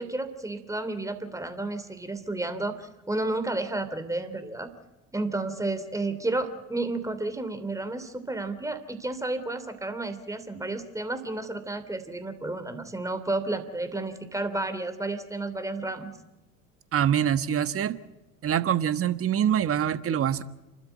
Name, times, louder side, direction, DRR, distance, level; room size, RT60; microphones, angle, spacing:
voice 1, 0.0-4.7 5.1-16.1, right 2 dB, 10° right, 9 dB, 3.0 m, -31 dB
voice 2, 16.9-18.0 18.4-20.4, right 9 dB, 35° right, 13 dB, 1.3 m, -25 dB
29.0 x 13.0 x 9.2 m, 1.0 s
hypercardioid pair, 75°, 41 cm